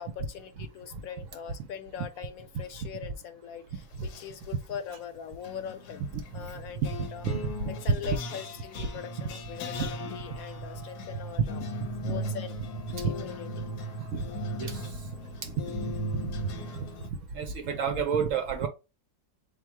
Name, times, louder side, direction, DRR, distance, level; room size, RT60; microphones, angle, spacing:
voice 1, 0.0-6.0 6.3-7.3 7.8-11.6 12.0-12.6 13.0-13.6 15.1-15.3, left 8 dB, 70° left, 1.0 m, -41 dB
sound 1, 3.9-4.5 5.4-17.1, equal, 85° left, 1.2 m, -38 dB
voice 2, 9.8-10.1 13.0-13.1 14.1-14.2 14.6-14.9 15.4-15.5 15.8-16.3 17.3-18.7, right 6 dB, 65° right, 0.8 m, -30 dB
3.6 x 2.5 x 4.6 m
omnidirectional pair, 1.7 m